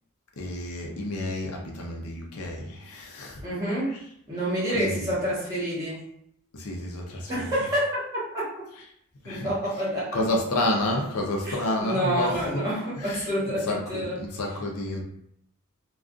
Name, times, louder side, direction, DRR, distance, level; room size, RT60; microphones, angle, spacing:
voice 1, 0.4-3.5 3.9-4.0 4.7-5.2 6.5-7.7 8.8-8.9 9.2-12.7 13.0-13.3 13.6-15.0, left 1 dB, 80° left, 1 dB, 0.6 m, -30 dB
voice 2, 3.4-3.9 4.3-6.0 7.3-8.0 8.3-8.4 9.2-10.2 11.4-14.2, equal, 15° right, -9 dB, 1.2 m, -28 dB
2.4 x 2.3 x 2.4 m, 0.71 s
head